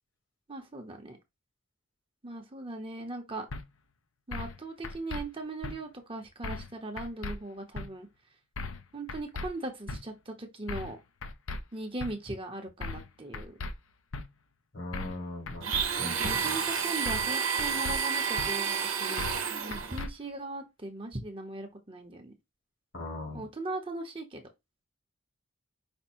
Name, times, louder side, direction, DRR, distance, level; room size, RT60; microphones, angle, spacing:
voice 1, 0.5-1.2 2.2-3.5 4.3-8.1 8.9-11.0 11.7-13.6 16.0-22.3 23.3-24.4, right 2 dB, 25° right, 0.8 m, -39 dB
sound 1, 3.5-3.6 4.3-4.6 4.8-5.2 5.6-5.8 6.4-6.7 7.0-7.4 7.8-7.9 8.6-8.8 9.1-9.5 9.9-10.0 10.7-10.9 11.2-11.6 12.0-12.1 12.8-13.1 13.3-13.7 14.1-14.2 14.9-15.2 15.5-15.8 16.2-16.4 17.1-17.3 17.6-18.0 18.4-18.5 19.2-19.4 19.7-20.1, left 3 dB, 85° left, 0.6 m, -37 dB
voice 2, 14.7-15.7 16.0-16.5 22.9-23.4, left 2 dB, 60° left, 1.5 m, -39 dB
Domestic sounds home sounds, 15.6-20.0, right 6 dB, 90° right, 0.8 m, -30 dB
5.1 x 2.2 x 4.3 m
head